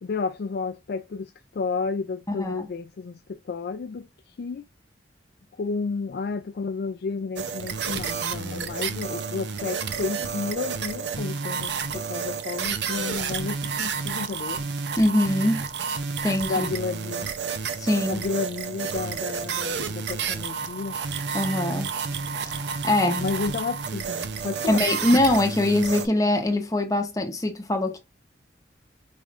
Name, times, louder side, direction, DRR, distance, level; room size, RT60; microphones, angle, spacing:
voice 1, 0.0-4.1 4.4-4.6 5.5-14.6 16.5-17.3 18.1-21.0 23.2-24.9, left 4 dB, 55° left, 0.3 m, -31 dB
voice 2, 2.3-2.7 15.0-15.7 16.2-16.7 17.8-18.2 21.3-21.9 22.4-23.2 24.7-28.0, left 1 dB, 20° left, 0.7 m, -23 dB
bent Speak & Spell, 7.4-26.1, right 6 dB, 65° right, 0.6 m, -30 dB
4.8 x 3.2 x 2.4 m
head